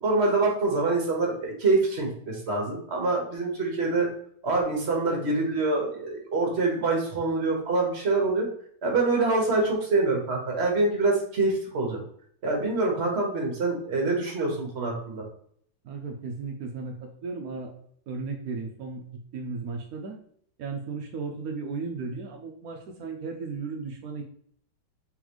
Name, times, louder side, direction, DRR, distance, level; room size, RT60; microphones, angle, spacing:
voice 1, 0.0-4.1 4.4-8.5 8.8-12.0 12.4-15.2, right 3 dB, 35° right, 0 dB, 1.2 m, -25 dB
voice 2, 15.8-17.7 18.1-20.2 20.6-24.2, right 4 dB, 80° right, 1 dB, 0.8 m, -35 dB
4.3 x 3.9 x 3.0 m, 0.62 s
omnidirectional pair, 2.3 m